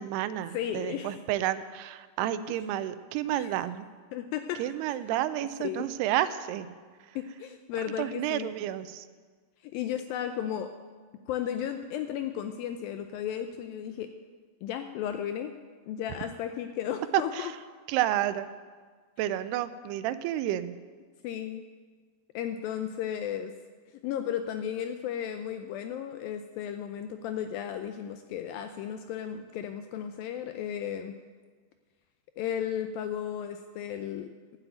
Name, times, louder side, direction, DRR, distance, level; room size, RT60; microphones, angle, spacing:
voice 1, 0.0-3.9 4.6-6.7 7.1-7.2 8.0-9.1 17.1-17.5 17.9-18.5 19.2-20.8, right 13 dB, 85° right, 13 dB, 2.6 m, -30 dB
voice 2, 0.5-1.2 3.3-3.5 4.1-4.6 5.4-5.9 7.2-8.5 9.6-10.7 11.3-14.1 14.6-15.5 15.9-17.5 21.2-21.6 22.3-23.5 24.0-31.2 32.4-34.3, left 9 dB, 80° left, 7 dB, 2.1 m, -34 dB
12.0 x 7.9 x 9.1 m, 1.5 s
omnidirectional pair, 4.6 m